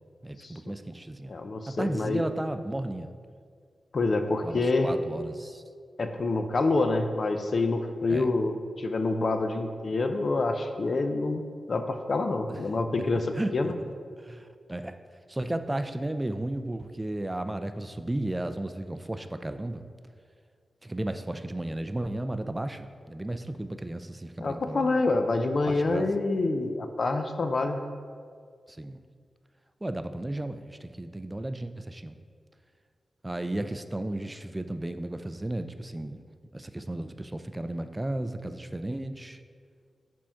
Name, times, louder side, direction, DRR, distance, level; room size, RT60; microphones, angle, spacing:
voice 1, 0.2-1.3 1.7-3.1 4.4-5.6 8.1-8.3 12.5-12.6 13.3-13.7 14.2-15.0 15.3-19.8 20.8-25.0 25.7-26.1 28.7-29.0 29.8-32.2 33.2-36.2 36.5-39.4, right 1 dB, 20° right, 9 dB, 0.4 m, -34 dB
voice 2, 1.3-2.2 3.9-4.9 6.0-13.7 24.4-27.8, left 3 dB, 60° left, 6 dB, 0.5 m, -27 dB
5.0 x 3.6 x 5.7 m, 2.1 s
cardioid pair, 50°, 0 cm